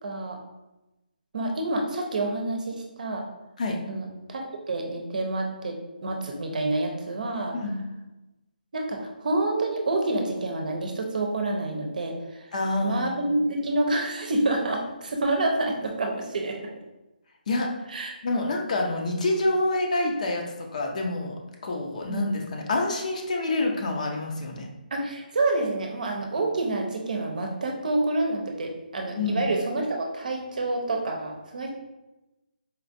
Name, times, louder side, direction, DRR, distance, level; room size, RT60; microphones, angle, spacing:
voice 1, 0.0-0.4 1.3-3.2 3.9-7.6 8.7-12.5 12.8-16.7 17.9-18.1 22.1-22.2 24.9-31.7, right 2 dB, 60° right, 2 dB, 0.7 m, -28 dB
voice 2, 12.5-13.2 17.5-17.7 18.2-20.4 20.7-21.4 21.6-24.7 29.1-29.5, left 2 dB, 50° left, 1 dB, 0.7 m, -27 dB
4.4 x 2.4 x 2.6 m, 0.99 s
figure-of-eight pair, 150°, 5 cm